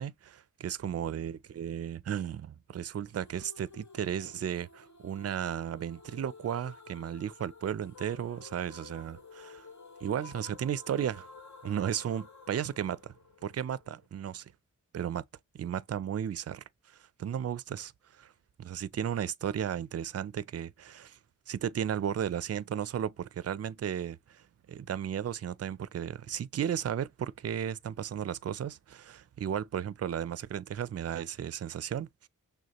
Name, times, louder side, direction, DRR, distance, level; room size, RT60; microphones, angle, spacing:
voice 1, 0.0-9.7 10.0-11.3 11.6-13.1 13.4-14.5 14.9-15.2 15.5-18.3 18.6-21.2 21.5-32.3, right 9 dB, 50° right, 0.4 m, -34 dB
sound 1, 3.1-14.1, left 4 dB, 60° left, 0.9 m, -52 dB
6.3 x 2.3 x 2.8 m
wide cardioid pair, 60°, 33 cm